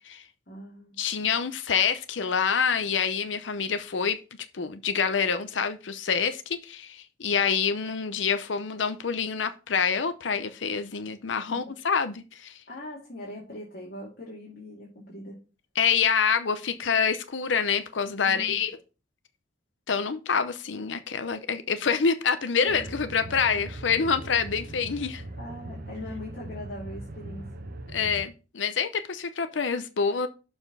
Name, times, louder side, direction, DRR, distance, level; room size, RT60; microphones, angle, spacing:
voice 1, 0.5-1.0 11.5-11.6 12.7-15.4 18.2-18.6 22.6-22.7 25.4-27.5, left 1 dB, 55° left, 2.4 m, -41 dB
voice 2, 1.0-4.2 4.5-12.6 15.8-18.7 19.9-25.2 27.9-30.3, left 6 dB, 85° left, 0.7 m, -26 dB
sound 1, 22.7-28.3, right 1 dB, 55° right, 0.9 m, -40 dB
6.9 x 4.3 x 5.4 m
head